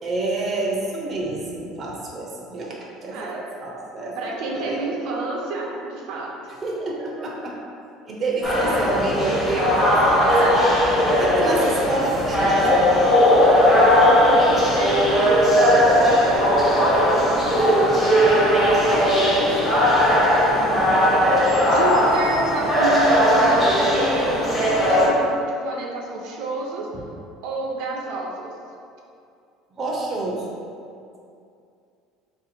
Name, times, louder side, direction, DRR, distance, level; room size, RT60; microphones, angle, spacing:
voice 1, 0.0-3.2 3.6-4.9 6.6-7.6 8.1-10.3 11.2-13.0 17.5-17.9 18.2-19.7 20.5-20.9 26.9-27.0 29.8-30.6, right 2 dB, 25° right, -3 dB, 0.6 m, -28 dB
voice 2, 3.1-3.4 4.2-6.3 10.1-10.9 11.4-11.7 13.4-17.1 18.4-19.4 20.3-20.6 21.7-26.9 27.4-28.5, right 3 dB, 65° right, -1 dB, 0.6 m, -30 dB
sound 1, 8.4-25.1, equal, 10° left, 0.8 m, -18 dB
3.2 x 2.7 x 4.2 m, 2.5 s
cardioid pair, 155°, 0 cm